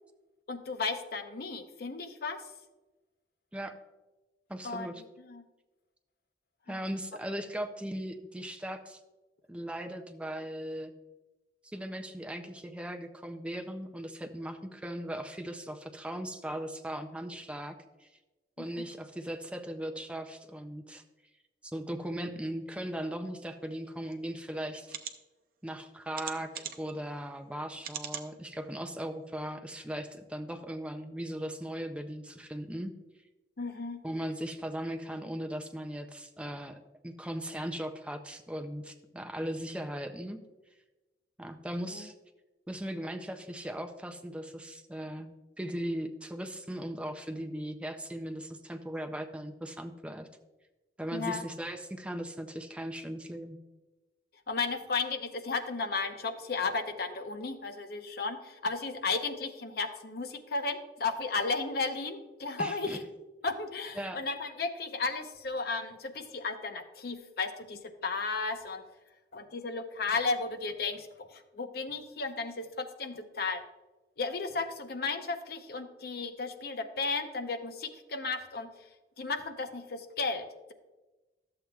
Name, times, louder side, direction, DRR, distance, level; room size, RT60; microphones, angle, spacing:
voice 1, 0.5-2.4 4.6-4.9 5.3-5.4 6.7-6.8 18.6-18.8 33.6-34.0 41.9-42.1 51.1-51.4 54.5-63.0 63.4-68.9 69.3-73.6 74.2-78.7 79.2-80.7, left 4 dB, 60° left, 7 dB, 0.7 m, -34 dB
voice 2, 4.5-5.0 6.7-9.0 9.5-10.9 11.6-18.1 18.6-21.0 21.6-25.0 25.6-32.9 34.0-40.4 41.4-42.1 42.7-50.3 51.0-53.6 62.6-63.0 64.0-64.2, right 1 dB, 5° right, 6 dB, 0.4 m, -38 dB
sound 1, 24.1-24.2 24.8-25.1 26.1-26.9 27.8-28.3 28.8-28.9 29.3-29.4, right 8 dB, 55° right, 0.7 m, -40 dB
13.0 x 7.6 x 2.3 m, 1.1 s
head